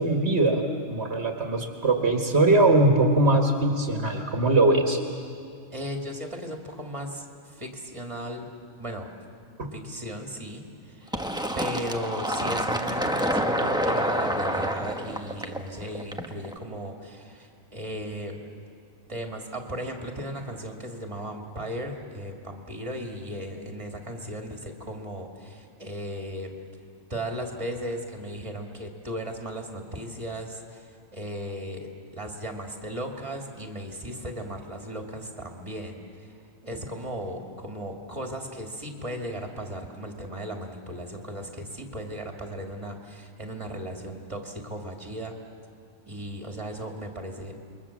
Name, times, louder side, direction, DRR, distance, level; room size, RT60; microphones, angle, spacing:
voice 1, 0.0-5.0 9.6-9.7, right 2 dB, 65° right, 3 dB, 2.0 m, -21 dB
voice 2, 5.7-8.5 8.8-9.1 9.7-11.2 11.6-18.4 19.1-26.5 27.1-36.3 36.6-45.3 46.1-47.5, equal, 25° right, 2 dB, 2.6 m, -36 dB
Fill (with liquid), 11.1-16.5, equal, 5° right, 1.2 m, -28 dB
28.0 x 22.5 x 7.4 m, 2.4 s
omnidirectional pair, 1.2 m